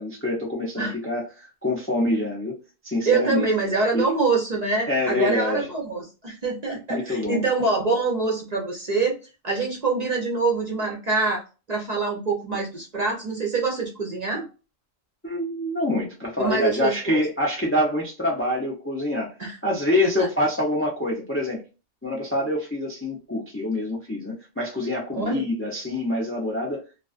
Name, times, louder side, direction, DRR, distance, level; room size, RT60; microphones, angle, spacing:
voice 1, 0.0-3.5 3.9-4.0 4.9-5.7 6.9-7.4 15.2-19.3 19.6-21.6 22.0-26.8, left 1 dB, 20° left, -1 dB, 0.4 m, -26 dB
voice 2, 3.1-9.2 9.4-11.4 11.7-14.4 16.4-17.2 19.4-19.6 20.2-20.3 25.1-25.4, right 3 dB, 45° right, -2 dB, 0.6 m, -25 dB
2.4 x 2.3 x 2.3 m, 0.32 s
omnidirectional pair, 1.2 m